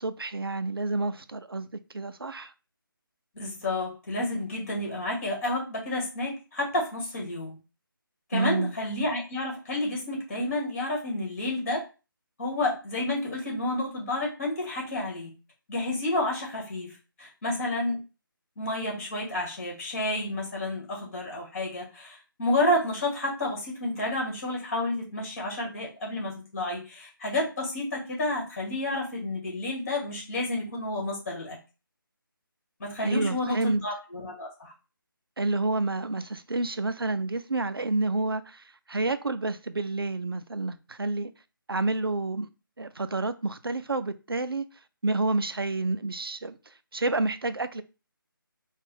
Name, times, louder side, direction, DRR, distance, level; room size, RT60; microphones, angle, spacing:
voice 1, 0.0-1.7 1.9-2.5 8.3-8.7 33.0-33.9 35.4-41.3 41.7-42.5 42.8-44.6 45.0-47.8, right 2 dB, 90° right, 0.5 m, -29 dB
voice 2, 3.4-7.6 8.3-11.8 12.4-15.3 15.7-16.9 17.2-18.0 18.6-31.6 32.8-34.7, left 1 dB, 40° left, 2.2 m, -30 dB
4.5 x 2.4 x 3.4 m
figure-of-eight pair, 155°, 12 cm